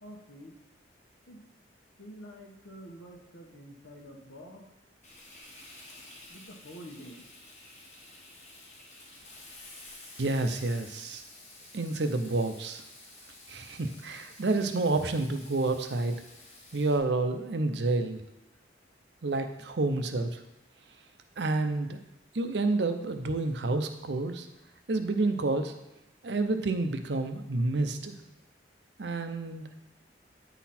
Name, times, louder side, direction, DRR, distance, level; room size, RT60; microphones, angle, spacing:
voice 1, 0.0-0.5 1.3-1.4 2.0-4.7 6.3-7.3, equal, 90° left, 2 dB, 1.2 m, -47 dB
Frying (food), 5.0-17.0, left 2 dB, 35° left, 1.3 m, -51 dB
voice 2, 10.2-11.2 11.7-12.8 13.5-16.1 16.7-18.2 19.2-20.4 21.4-22.0 22.3-24.5 24.9-25.7 26.2-28.2 29.0-29.7, right 2 dB, 70° right, 7 dB, 0.6 m, -29 dB
9.2 x 4.0 x 4.3 m, 0.93 s
head